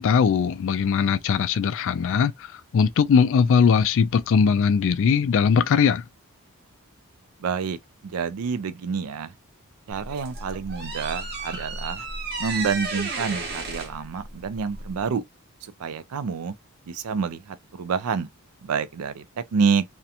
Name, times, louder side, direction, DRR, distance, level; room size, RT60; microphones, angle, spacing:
voice 1, 0.0-6.0, left 6 dB, 60° left, 0.3 m, -20 dB
voice 2, 7.4-7.8 8.0-9.3 9.9-12.0 12.4-15.2 15.6-16.6 16.9-18.3 18.6-19.8, right 6 dB, 85° right, 0.4 m, -28 dB
sound 1, 9.9-15.1, right 3 dB, 50° right, 0.7 m, -33 dB
2.4 x 2.1 x 2.8 m
head